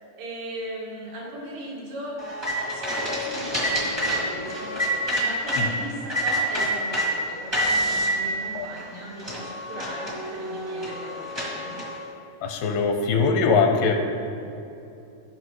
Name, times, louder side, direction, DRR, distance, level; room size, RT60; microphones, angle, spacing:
voice 1, 0.2-2.2 2.7-11.7, right 1 dB, 90° right, -6 dB, 4.1 m, -38 dB
sound 1, 2.2-5.6 6.1-7.1 7.5-8.1 8.8-8.9 9.2-12.0, equal, 30° right, 0.4 m, -27 dB
sound 2, 2.4-6.0, left 4 dB, 60° right, 1.1 m, -39 dB
voice 2, 12.4-14.0, left 4 dB, 80° left, 4 dB, 2.6 m, -22 dB
15.5 x 5.8 x 3.1 m, 2.7 s
omnidirectional pair, 4.6 m